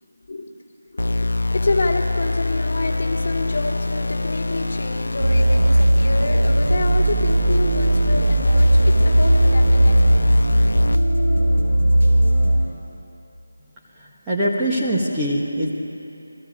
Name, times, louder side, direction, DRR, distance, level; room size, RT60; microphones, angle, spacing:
voice 1, 0.9-10.3 10.6-10.9 11.3-11.4, left 2 dB, 40° left, -2 dB, 3.0 m, -28 dB
sound 1, 1.0-11.0, left 3 dB, 85° left, 0.8 m, -25 dB
sound 2, 5.2-12.6, right 1 dB, 45° right, 6.7 m, -17 dB
voice 2, 14.0-15.7, equal, 10° right, -7 dB, 1.4 m, -23 dB
29.5 x 21.0 x 5.3 m, 2.8 s
figure-of-eight pair, 175°, 0 cm